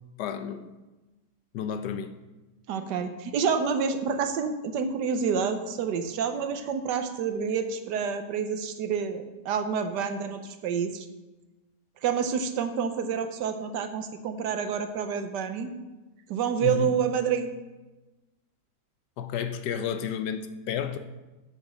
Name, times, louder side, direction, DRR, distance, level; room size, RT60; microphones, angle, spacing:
voice 1, 0.2-0.8 1.5-2.2 16.6-17.0 19.2-21.0, left 8 dB, 85° left, 9 dB, 1.3 m, -31 dB
voice 2, 2.7-11.1 12.0-15.7 16.3-17.5, right 6 dB, 85° right, 8 dB, 1.4 m, -28 dB
10.0 x 6.2 x 6.3 m, 1.1 s
omnidirectional pair, 1.8 m